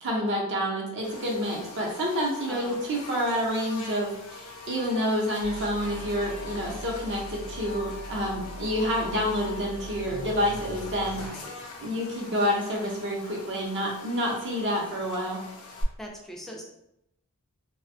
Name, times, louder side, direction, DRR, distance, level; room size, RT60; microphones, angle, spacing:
voice 1, 0.0-11.2 11.8-15.4, equal, 55° right, -2 dB, 0.6 m, -28 dB
Buzz, 1.0-15.8, left 4 dB, 85° left, 0.5 m, -43 dB
voice 2, 2.5-2.8 11.2-11.9 16.0-16.6, equal, ahead, -1 dB, 0.4 m, -42 dB
sound 1, 5.4-11.3, equal, 90° right, 0.7 m, -41 dB
2.5 x 2.2 x 2.6 m, 0.82 s
head